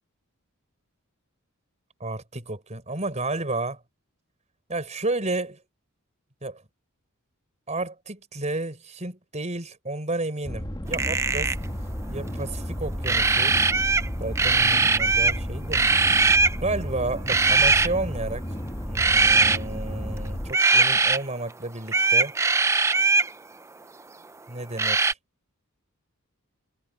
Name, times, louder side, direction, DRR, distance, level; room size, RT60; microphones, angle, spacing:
voice 1, 2.0-3.8 4.7-5.6 6.4-6.6 7.7-11.6 12.1-13.6 14.2-15.8 16.6-18.5 18.8-22.3 24.5-25.2, right 2 dB, 30° right, 4.8 m, -31 dB
sound 1, 10.4-20.5, equal, 20° left, 1.5 m, -33 dB
sound 2, 10.9-11.6 13.0-14.1 14.4-15.4 15.7-16.6 17.3-17.9 18.9-19.6 20.5-21.2 21.9-23.3 24.8-25.1, right 4 dB, 15° right, 0.4 m, -20 dB
head